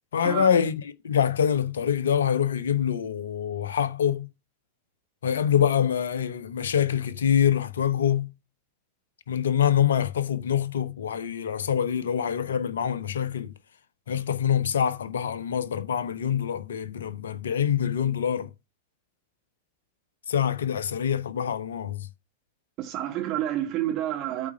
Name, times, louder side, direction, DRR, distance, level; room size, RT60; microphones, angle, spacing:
voice 1, 0.1-0.7 1.0-4.3 5.2-8.3 9.3-13.5 14.1-18.5 20.3-22.1, left 8 dB, 65° left, 1.0 m, -25 dB
voice 2, 22.8-24.5, right 12 dB, 40° right, 2.6 m, -29 dB
8.7 x 4.4 x 6.1 m
figure-of-eight pair, 90°, 0 cm